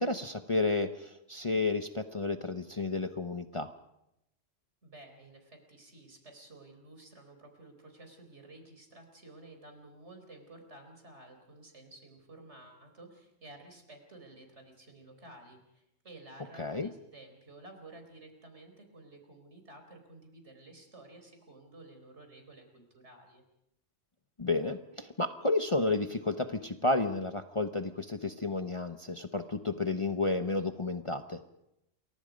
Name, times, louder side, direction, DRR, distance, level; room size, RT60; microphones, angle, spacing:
voice 1, 0.0-3.7 16.6-16.9 24.4-31.4, left 3 dB, 25° left, 7 dB, 0.9 m, -31 dB
voice 2, 4.8-23.4, right 2 dB, 60° right, 5 dB, 4.5 m, -53 dB
28.5 x 23.0 x 5.2 m, 0.84 s
omnidirectional pair, 1.3 m